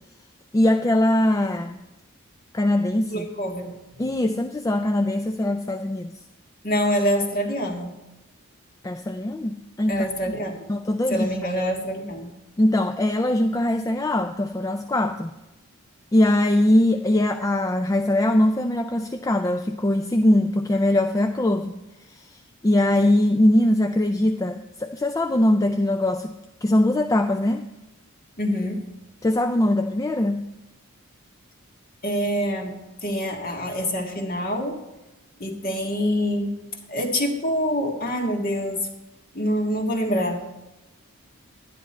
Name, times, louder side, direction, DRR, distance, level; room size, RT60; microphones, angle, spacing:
voice 1, 0.5-1.8 2.5-3.3 4.0-6.1 8.8-10.1 10.7-11.5 12.6-15.3 16.1-21.8 22.1-22.4 22.6-26.3 26.6-27.6 29.2-30.5, left 1 dB, 15° left, 6 dB, 0.3 m, -21 dB
voice 2, 3.1-3.8 6.6-7.9 9.9-10.7 11.1-12.3 28.4-28.8 32.0-32.7 33.0-34.8 35.4-36.5 36.9-38.9 39.3-40.4, equal, 40° left, 2 dB, 1.7 m, -25 dB
11.5 x 10.5 x 4.2 m, 1.0 s
head